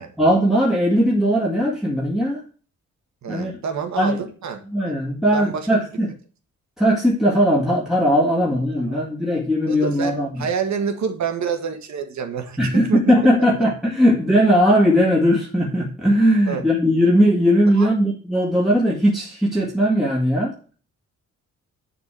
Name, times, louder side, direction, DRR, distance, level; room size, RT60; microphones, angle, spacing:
voice 1, 0.2-2.4 3.3-3.5 4.0-4.2 4.7-6.1 6.8-10.4 12.6-20.5, equal, ahead, 2.1 m, -18 dB
voice 2, 3.2-4.9 5.3-5.7 8.8-9.0 9.7-13.0 16.5-16.6 17.8-17.9, right 6 dB, 65° right, 1.7 m, -28 dB
11.0 x 4.3 x 6.8 m
wide cardioid pair, 150°, 30 cm